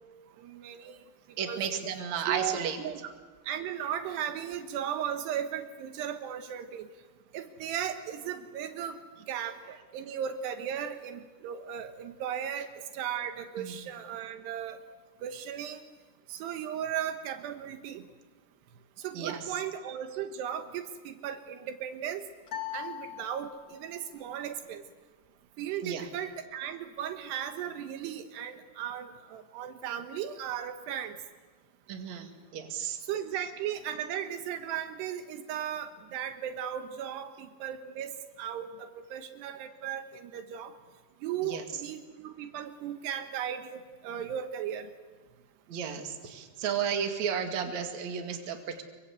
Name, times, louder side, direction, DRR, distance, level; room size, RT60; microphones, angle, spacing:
voice 1, 0.4-1.0 1.5-1.6 2.3-3.0 3.5-6.9 7.3-9.0 9.3-12.7 12.9-14.8 15.2-15.8 16.3-18.1 19.0-22.2 22.7-24.8 25.6-31.2 33.1-38.1 38.4-40.7 41.2-44.9, right 9 dB, 80° right, 8 dB, 3.3 m, -36 dB
voice 2, 1.4-2.8 13.6-13.8 19.1-19.6 25.8-26.1 31.9-33.0 41.4-41.6 45.7-48.8, right 7 dB, 50° right, 5 dB, 3.1 m, -33 dB
sound 1, 22.5-23.9, left 10 dB, 35° left, 1.9 m, -40 dB
26.0 x 23.5 x 8.2 m, 1.4 s
omnidirectional pair, 4.8 m